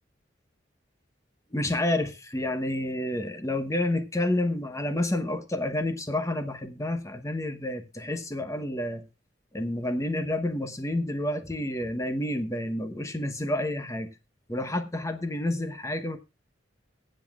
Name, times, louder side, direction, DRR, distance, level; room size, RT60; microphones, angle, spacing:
voice 1, 1.5-9.0 9.5-14.1 14.5-16.2, left 1 dB, 15° left, 1.0 m, -29 dB
23.0 x 7.7 x 2.4 m
head